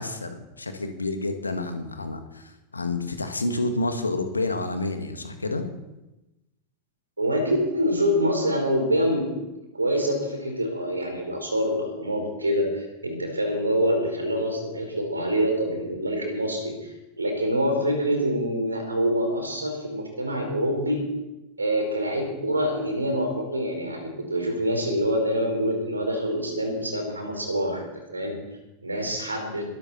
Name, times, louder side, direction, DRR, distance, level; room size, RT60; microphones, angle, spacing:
voice 1, 0.0-5.6, left 2 dB, 80° left, 7 dB, 1.9 m, -29 dB
voice 2, 7.2-9.3 9.7-21.0 21.6-27.8 28.1-28.3 28.8-29.6, equal, 80° right, 3 dB, 4.9 m, -26 dB
21.0 x 13.0 x 4.4 m, 0.99 s
figure-of-eight pair, 85°, 0 cm